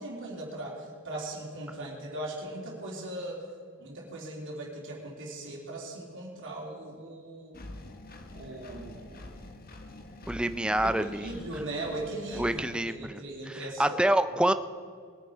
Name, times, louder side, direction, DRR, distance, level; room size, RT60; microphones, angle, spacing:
voice 1, 0.0-3.4 3.8-7.6 8.3-9.2 10.8-14.0, right 1 dB, 60° right, -2 dB, 3.2 m, -39 dB
Engine, 7.5-12.8, left 1 dB, 40° left, 1.2 m, -45 dB
voice 2, 10.3-11.3 12.3-13.2 13.5-14.5, right 1 dB, 5° right, 11 dB, 0.4 m, -27 dB
21.0 x 9.4 x 4.6 m, 2.2 s
head